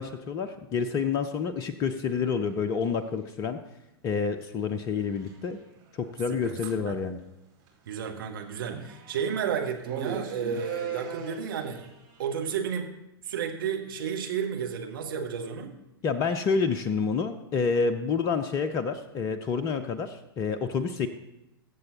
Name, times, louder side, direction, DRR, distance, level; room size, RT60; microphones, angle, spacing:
voice 1, 0.0-3.6 4.0-5.6 5.9-7.2 16.0-21.1, left 5 dB, 25° left, 9 dB, 0.6 m, -28 dB
sound 1, 2.1-2.3 5.0-5.3 6.0-6.2 6.5-6.7 7.7-7.8 8.0-8.1 8.7-9.4 9.9-12.3, right 7 dB, 35° right, 3.0 m, -37 dB
voice 2, 7.9-11.9 12.2-13.0 13.2-15.8, right 7 dB, 60° right, 2 dB, 1.5 m, -32 dB
22.0 x 7.6 x 2.9 m, 0.91 s
figure-of-eight pair, 95°, 13 cm